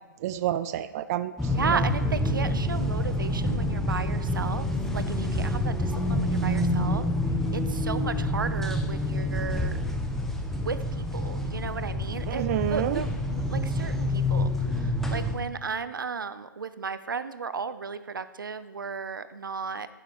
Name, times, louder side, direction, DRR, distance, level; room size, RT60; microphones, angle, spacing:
voice 1, 0.2-1.3 1.6-1.8 12.3-13.0, right 12 dB, 50° right, 14 dB, 0.5 m, -28 dB
sound 1, 1.4-15.4, left 1 dB, 5° left, 1.4 m, -27 dB
voice 2, 1.5-7.1 7.5-9.8 10.6-19.9, right 5 dB, 85° right, 13 dB, 0.7 m, -34 dB
15.0 x 7.1 x 4.8 m, 1.1 s
hypercardioid pair, 120°, 11 cm